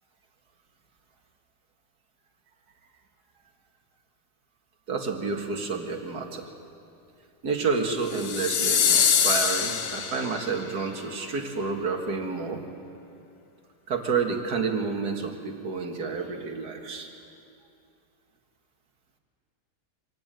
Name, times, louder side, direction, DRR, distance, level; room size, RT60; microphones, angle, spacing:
voice 1, 4.9-6.5 7.4-12.6 13.9-17.1, right 4 dB, 65° right, 3 dB, 2.4 m, -29 dB
sound 1, 8.1-10.6, left 7 dB, 60° left, 1.4 m, -24 dB
25.0 x 16.0 x 9.1 m, 2.6 s
omnidirectional pair, 1.9 m